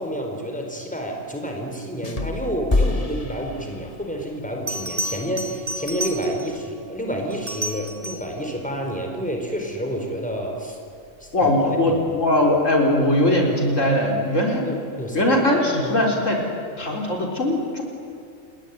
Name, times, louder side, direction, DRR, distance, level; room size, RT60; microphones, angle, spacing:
voice 1, 0.0-10.8 11.2-11.5 11.9-12.2 14.6-16.1, equal, 5° left, 2 dB, 4.4 m, -29 dB
sound 1, 2.0-4.2, left 2 dB, 30° left, 1.4 m, -26 dB
Bell, 4.0-4.1 4.7-6.6 7.3-8.4 11.1-11.3, right 1 dB, 45° right, 3.7 m, -31 dB
voice 2, 11.3-14.6 15.1-16.4 16.8-17.8, left 1 dB, 75° left, 0 dB, 4.5 m, -20 dB
29.0 x 21.0 x 9.7 m, 2.4 s
omnidirectional pair, 1.3 m